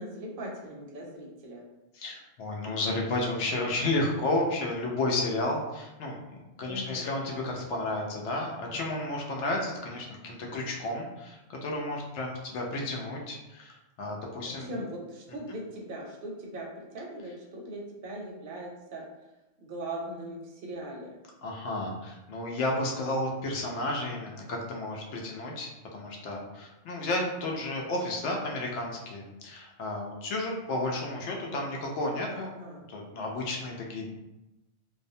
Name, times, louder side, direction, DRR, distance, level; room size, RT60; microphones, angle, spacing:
voice 1, 0.0-1.6 6.7-7.3 14.6-19.0 19.6-21.2 32.3-32.8, right 1 dB, 60° right, -1 dB, 0.7 m, -40 dB
voice 2, 1.9-14.7 21.4-32.5 32.9-34.1, left 2 dB, 80° left, -1 dB, 0.9 m, -32 dB
2.4 x 2.1 x 2.6 m, 0.97 s
omnidirectional pair, 1.2 m